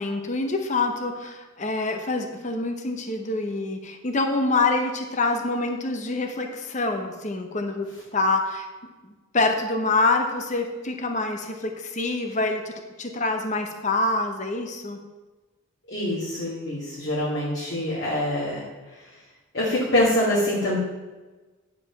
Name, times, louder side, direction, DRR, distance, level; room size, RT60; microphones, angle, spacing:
voice 1, 0.0-7.9 8.1-8.7 9.3-15.0, left 3 dB, 35° left, 5 dB, 0.8 m, -26 dB
voice 2, 15.9-18.6 19.5-20.8, left 1 dB, 55° left, -9 dB, 2.1 m, -24 dB
9.7 x 4.9 x 5.9 m, 1.2 s
head